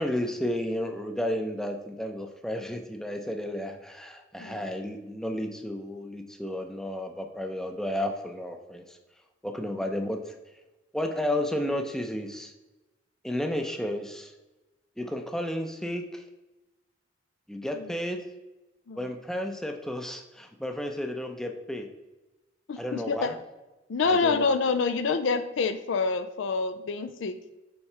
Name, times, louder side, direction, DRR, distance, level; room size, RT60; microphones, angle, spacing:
voice 1, 0.0-9.0 9.4-10.2 10.9-12.5 13.2-14.3 15.0-16.2 17.5-18.2 18.9-21.9 22.8-23.3 24.0-24.5, left 1 dB, 5° left, 5 dB, 0.5 m, -32 dB
voice 2, 22.7-23.3 23.9-27.4, left 4 dB, 80° left, 10 dB, 0.4 m, -27 dB
7.2 x 4.8 x 3.3 m, 1.1 s
head